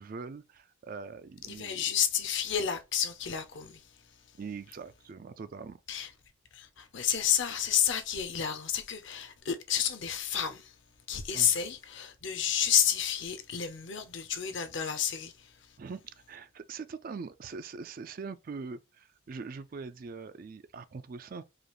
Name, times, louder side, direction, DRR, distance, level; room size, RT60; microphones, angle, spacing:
voice 1, 0.0-1.8 4.4-5.8 11.3-11.5 15.8-21.4, right 4 dB, 40° right, 0.3 m, -42 dB
voice 2, 1.4-3.9 5.9-6.1 6.5-10.7 11.1-15.5, left 9 dB, 60° left, 0.7 m, -30 dB
4.9 x 2.4 x 3.0 m
head